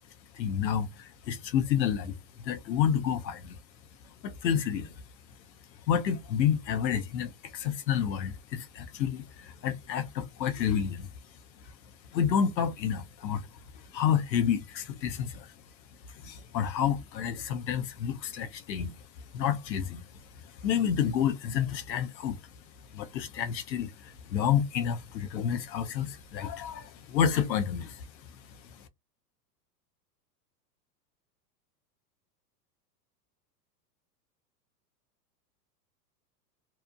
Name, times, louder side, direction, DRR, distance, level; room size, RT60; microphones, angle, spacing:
voice 1, 0.3-2.1 2.4-3.6 4.2-4.9 5.9-11.1 12.1-13.4 13.9-15.5 16.2-18.9 19.3-20.0 20.6-22.4 22.9-28.0, left 8 dB, 85° left, 0.7 m, -29 dB
2.8 x 2.0 x 2.3 m
hypercardioid pair, 110°, 50 cm